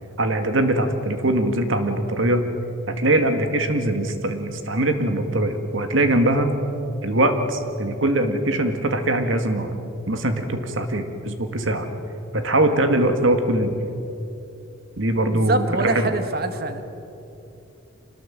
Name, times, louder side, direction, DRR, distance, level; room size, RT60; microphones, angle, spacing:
voice 1, 0.2-2.4 2.9-6.5 7.0-9.7 10.1-11.9 12.3-13.8 15.0-16.1, right 1 dB, 65° right, 7 dB, 2.0 m, -22 dB
voice 2, 15.3-16.8, right 2 dB, 45° right, 8 dB, 1.7 m, -24 dB
25.5 x 19.5 x 7.5 m, 2.9 s
head